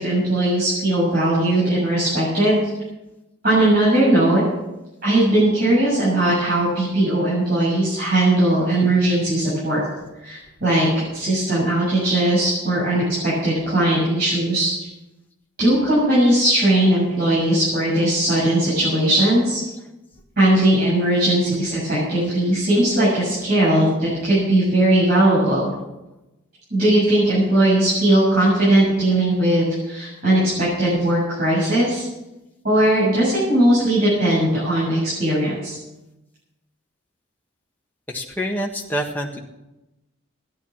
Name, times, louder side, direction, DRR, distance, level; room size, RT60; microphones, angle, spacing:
voice 1, 0.0-2.6 3.4-4.4 5.0-9.8 10.2-10.9 11.1-14.9 15.6-19.6 20.4-25.7 26.7-32.0 32.6-35.8, right 1 dB, 45° right, -9 dB, 7.5 m, -19 dB
voice 2, 38.1-39.4, equal, 10° left, 0 dB, 1.5 m, -26 dB
14.5 x 10.5 x 7.4 m, 0.97 s
head